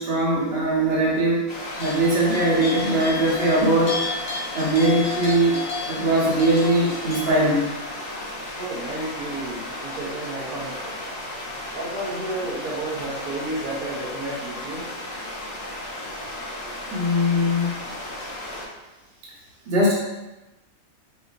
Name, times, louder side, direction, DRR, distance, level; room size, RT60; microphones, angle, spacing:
voice 1, 0.0-1.5 1.8-4.0 4.5-5.6 5.9-7.7 16.9-17.8 19.7-19.9, right 1 dB, 45° right, -6 dB, 1.3 m, -20 dB
sound 1, 1.5-18.7, left 1 dB, 45° left, 1.1 m, -35 dB
sound 2, 1.7-7.3, left 4 dB, 80° left, 1.2 m, -33 dB
voice 2, 8.6-11.0 11.7-14.9 16.6-16.7, right 1 dB, 80° right, -6 dB, 1.5 m, -32 dB
5.5 x 2.8 x 2.6 m, 1.0 s
omnidirectional pair, 1.5 m